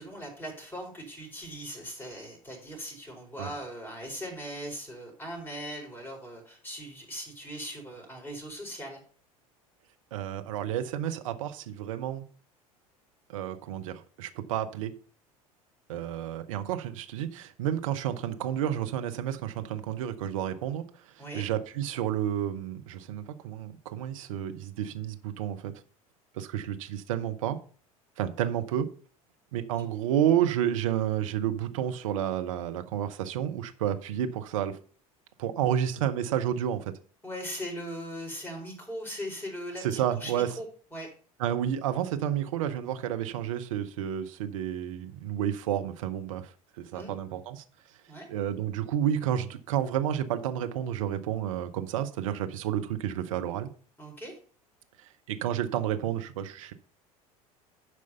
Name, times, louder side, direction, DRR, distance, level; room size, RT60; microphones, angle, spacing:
voice 1, 0.0-9.0 21.2-21.4 37.2-41.1 46.9-47.2 48.1-48.3 54.0-54.3, equal, 10° left, 1 dB, 4.5 m, -39 dB
voice 2, 10.1-12.3 13.3-14.9 15.9-20.8 21.3-25.7 26.3-27.6 28.2-28.9 29.5-34.8 35.4-36.9 39.8-40.5 41.4-47.6 48.3-53.7 55.3-56.7, right 10 dB, 60° right, 7 dB, 0.9 m, -30 dB
11.0 x 4.9 x 5.5 m, 0.41 s
figure-of-eight pair, 70°, 19 cm